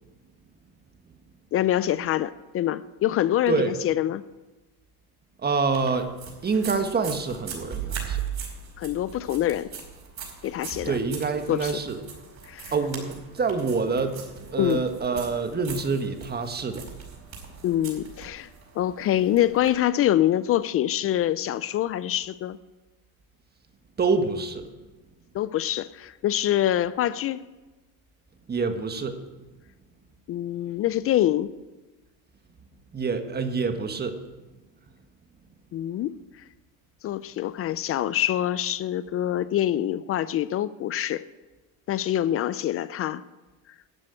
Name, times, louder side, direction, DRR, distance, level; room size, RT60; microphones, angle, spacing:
voice 1, 1.5-4.2 8.8-9.7 10.4-11.0 11.5-11.7 12.5-12.7 14.6-14.8 17.6-18.5 18.8-22.6 25.3-27.4 30.3-31.5 35.7-36.2 37.0-41.2 41.9-43.2, left 12 dB, 35° left, 17 dB, 0.4 m, -25 dB
voice 2, 5.4-6.1 6.4-8.2 10.8-12.0 12.7-14.2 14.5-16.9 24.0-24.7 28.5-29.2 32.9-34.2, right 4 dB, 20° right, 7 dB, 1.4 m, -26 dB
sound 1, 5.7-19.7, right 7 dB, 40° right, 4.9 m, -39 dB
12.5 x 7.5 x 8.8 m, 1.2 s
supercardioid pair, 110°, 44 cm